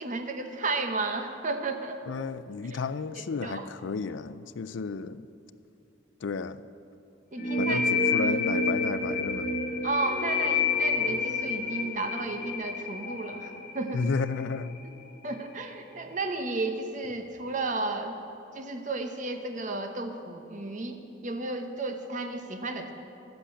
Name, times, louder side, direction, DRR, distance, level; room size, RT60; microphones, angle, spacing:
voice 1, 0.0-2.0 2.6-2.8 3.2-3.7 7.3-7.8 9.8-14.0 15.2-18.2 18.5-22.9, right 3 dB, 40° right, 6 dB, 0.9 m, -33 dB
voice 2, 2.1-5.3 6.2-6.6 7.6-9.5 13.9-14.8, left 4 dB, 80° left, 15 dB, 0.4 m, -32 dB
sound 1, 7.4-14.8, left 3 dB, 50° left, 1.1 m, -29 dB
11.5 x 7.9 x 8.5 m, 2.6 s
head